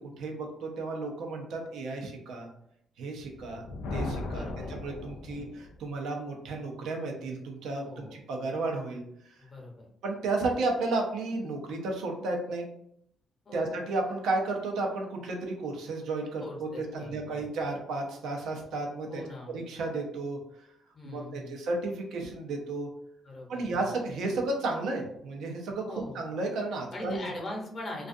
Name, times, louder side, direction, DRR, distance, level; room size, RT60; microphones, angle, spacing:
voice 1, 0.0-2.5 3.0-3.6 3.9-9.0 10.0-12.7 13.5-19.2 19.5-20.4 21.0-22.9 23.5-27.3, right 2 dB, 80° right, 2 dB, 0.6 m, -33 dB
Thunder, 3.3-5.9, left 2 dB, 90° left, 0.3 m, -37 dB
voice 2, 4.3-4.7 5.3-5.5 7.9-8.2 9.4-9.9 13.5-13.8 16.4-17.4 19.1-19.6 20.9-21.6 23.2-23.7 25.8-26.2 26.9-28.1, left 1 dB, 40° left, -1 dB, 0.8 m, -41 dB
2.4 x 2.3 x 2.5 m, 0.72 s
cardioid pair, 90°, 0 cm